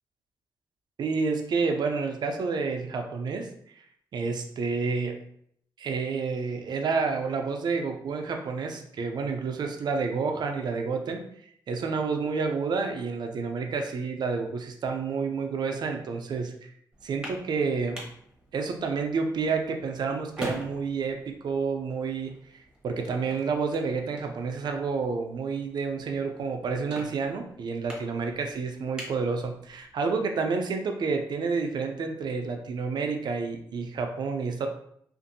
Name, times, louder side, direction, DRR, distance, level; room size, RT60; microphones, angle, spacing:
voice 1, 1.0-3.5 4.1-5.2 5.8-11.2 11.7-16.7 17.0-18.0 18.5-22.3 22.8-34.7, right 4 dB, 65° right, 4 dB, 0.5 m, -29 dB
sound 1, 16.9-30.0, equal, 10° right, 1.0 m, -45 dB
2.5 x 2.5 x 2.6 m, 0.67 s
cardioid pair, 60°, 8 cm